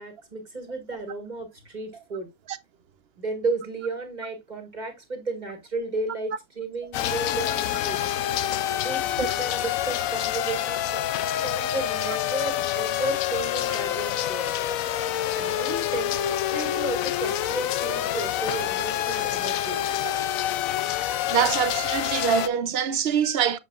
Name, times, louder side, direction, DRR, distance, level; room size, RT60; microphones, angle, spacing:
voice 1, 0.0-2.3 3.2-8.2 8.8-11.0 11.4-14.5 15.3-16.2 16.5-19.8, right 2 dB, 30° right, 2.3 m, -33 dB
sound 1, 6.9-22.5, left 12 dB, 75° left, 1.0 m, -27 dB
voice 2, 21.3-23.6, right 8 dB, 55° right, 0.8 m, -24 dB
8.1 x 7.4 x 2.4 m
omnidirectional pair, 1.5 m